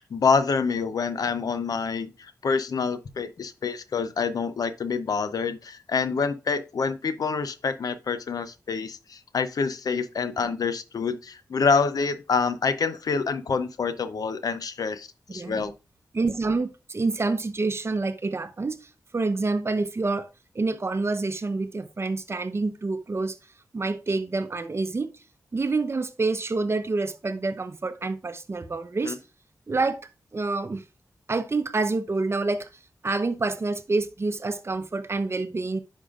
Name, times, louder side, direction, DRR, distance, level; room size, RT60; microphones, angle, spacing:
voice 1, 0.1-15.7 29.0-29.2, left 5 dB, 75° left, 0.6 m, -27 dB
voice 2, 15.3-15.7 16.1-18.9 19.1-20.3 20.5-23.4 23.7-25.1 25.5-29.2 29.7-30.0 30.3-30.8 31.3-32.7 33.0-35.8, right 3 dB, 40° right, 0.7 m, -27 dB
9.9 x 5.5 x 2.4 m
cardioid pair, 50°, 7 cm